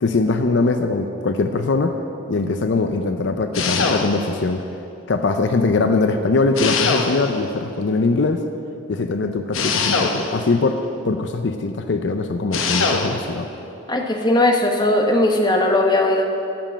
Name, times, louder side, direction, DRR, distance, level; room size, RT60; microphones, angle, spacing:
voice 1, 0.0-1.9 2.3-4.6 5.1-8.4 8.9-10.8 11.0-13.5, left 3 dB, 60° left, 7 dB, 0.5 m, -21 dB
sound 1, 3.5-4.4 6.6-7.5 9.5-10.6 12.5-13.3, left 4 dB, 80° left, 0.9 m, -22 dB
voice 2, 13.9-16.2, left 1 dB, 20° left, 3 dB, 0.8 m, -18 dB
12.5 x 5.3 x 8.5 m, 2.8 s
head